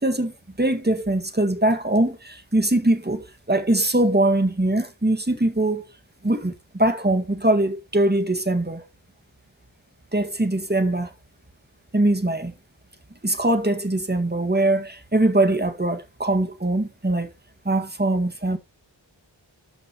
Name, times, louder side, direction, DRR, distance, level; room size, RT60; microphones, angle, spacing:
voice 1, 0.0-5.9 6.2-8.9 10.1-11.1 11.9-12.5 13.2-17.3 17.7-18.6, right 1 dB, 20° right, 1.7 m, -22 dB
13.0 x 5.4 x 2.9 m
wide cardioid pair, 50°, 46 cm